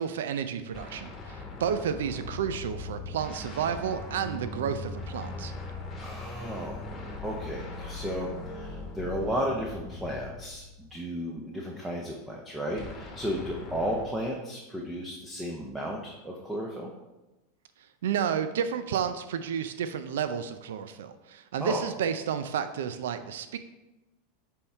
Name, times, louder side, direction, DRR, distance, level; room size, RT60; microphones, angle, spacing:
voice 1, 0.0-5.5 18.0-23.6, right 8 dB, 90° right, 10 dB, 0.4 m, -31 dB
sound 1, 0.7-11.0 12.8-14.0, left 3 dB, 20° left, 1.2 m, -40 dB
voice 2, 6.0-6.8 7.2-16.9 21.6-21.8, equal, 5° right, -2 dB, 0.7 m, -34 dB
6.8 x 3.7 x 4.4 m, 1.0 s
supercardioid pair, 150°, 0 cm